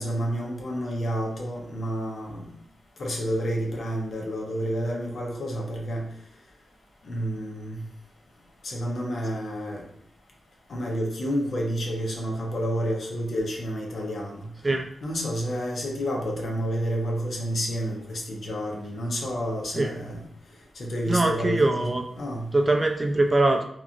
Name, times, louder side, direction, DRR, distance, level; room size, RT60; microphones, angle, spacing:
voice 1, 0.0-2.5 3.0-6.0 7.0-7.8 8.6-9.8 10.7-14.5 15.0-20.3 20.8-21.8 22.1-22.4, equal, 65° left, 0 dB, 0.7 m, -29 dB
voice 2, 21.1-22.0 22.5-23.6, right 2 dB, 25° right, 4 dB, 0.4 m, -22 dB
2.9 x 2.4 x 2.4 m, 0.68 s
cardioid pair, 85°, 0 cm